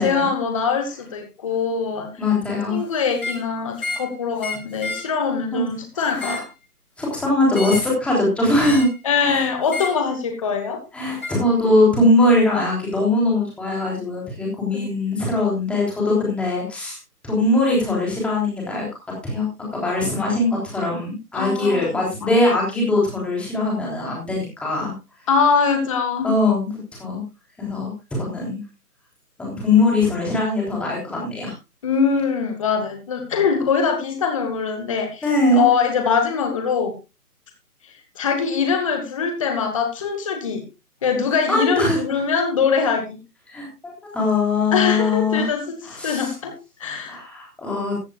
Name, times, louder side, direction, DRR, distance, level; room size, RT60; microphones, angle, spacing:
voice 1, 0.0-2.1 2.7-6.4 9.0-10.8 14.7-14.8 21.3-21.9 22.2-22.3 25.3-26.3 31.8-36.9 37.8-40.6 41.0-43.2 44.7-47.2, left 6 dB, 20° left, 6 dB, 1.3 m, -23 dB
voice 2, 2.2-2.8 5.5-5.6 5.9-6.4 7.0-8.9 9.2-9.5 10.9-17.0 17.2-18.9 19.2-19.5 19.7-24.9 26.2-26.7 27.0-27.2 27.6-28.6 29.4-31.5 35.2-35.6 41.5-42.0 43.5-45.5 45.8-46.3 47.1-48.0, left 2 dB, ahead, -3 dB, 3.4 m, -21 dB
sound 1, 3.1-3.5 3.8-4.1 4.4-5.1 6.0-6.5 7.5-7.9 8.6-9.0 9.7-10.0 11.2-11.4, left 3 dB, 65° left, 6.8 m, -31 dB
15.0 x 14.5 x 2.4 m, 0.26 s
figure-of-eight pair, 150°, 47 cm